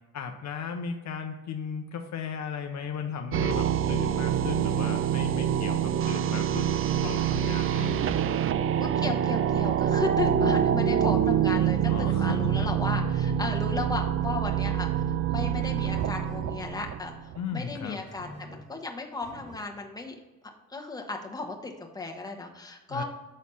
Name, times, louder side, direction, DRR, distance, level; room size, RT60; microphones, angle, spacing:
voice 1, 0.1-6.7 7.0-8.0 10.4-10.7 11.9-12.7 17.4-18.0 22.9-23.0, left 6 dB, 55° left, 5 dB, 0.7 m, -36 dB
sound 1, 3.3-17.4, right 9 dB, 40° right, 0.4 m, -26 dB
voice 2, 8.8-15.0 15.3-20.2 20.7-23.0, left 3 dB, 10° left, 1 dB, 1.2 m, -35 dB
sound 2, 11.9-12.5 16.0-16.5 18.1-18.7 19.2-19.7, right 1 dB, 55° right, 2.0 m, -48 dB
6.3 x 4.1 x 5.5 m, 1.2 s
cardioid pair, 85°, 34 cm